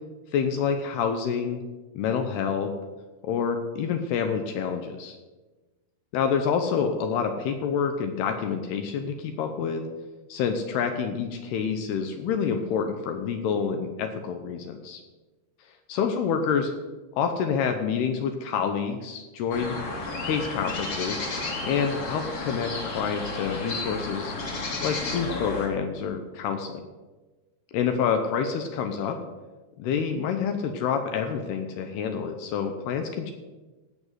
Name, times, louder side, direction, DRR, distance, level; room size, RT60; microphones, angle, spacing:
voice 1, 0.3-1.6 2.0-2.7 3.2-5.2 6.1-9.8 10.3-15.0 15.9-16.7 17.2-19.8 20.2-21.2 21.6-24.3 24.8-26.9 27.7-29.2 29.8-33.3, left 6 dB, 75° left, 6 dB, 2.6 m, -27 dB
sound 1, 19.5-25.7, left 3 dB, 40° left, 2.4 m, -32 dB
16.5 x 6.1 x 8.1 m, 1.2 s
omnidirectional pair, 5.3 m